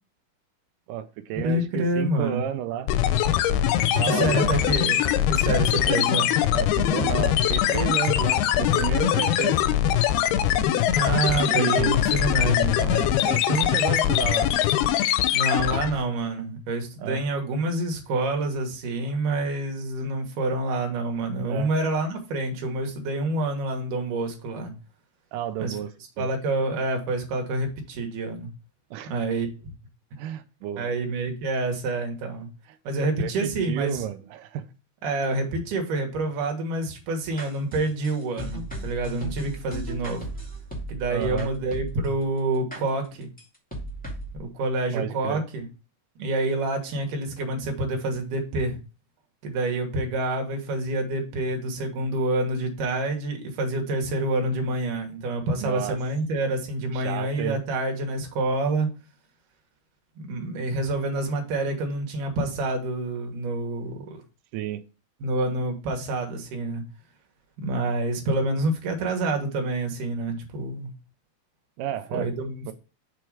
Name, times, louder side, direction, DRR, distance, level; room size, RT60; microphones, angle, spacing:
voice 1, 0.9-2.9 4.0-4.6 6.5-9.6 11.5-12.0 12.9-14.5 17.0-17.2 21.5-21.7 25.3-25.9 26.2-26.3 28.9-29.1 30.2-30.9 33.2-34.7 41.1-41.5 44.9-45.4 55.6-56.0 56.9-57.6 64.5-64.8 71.8-72.3 72.7-72.8, right 11 dB, 90° right, 9 dB, 1.9 m, -31 dB
voice 2, 1.4-2.4 3.8-6.3 10.9-13.0 15.3-24.7 25.6-25.7 26.2-28.5 29.1-29.5 30.8-32.5 32.8-34.0 35.0-40.3 40.9-43.3 44.3-45.7 46.2-48.8 49.4-58.9 60.2-64.2 65.2-66.8 67.6-70.9 72.1-72.7, right 2 dB, 65° right, 3 dB, 2.8 m, -27 dB
sound 1, 2.9-16.0, left 11 dB, 85° left, 2.6 m, -22 dB
sound 2, 37.4-42.2 42.7-42.8 43.4-43.5 43.7-44.4, right 1 dB, 5° left, 1.0 m, -35 dB
6.0 x 4.7 x 4.7 m, 0.33 s
omnidirectional pair, 4.4 m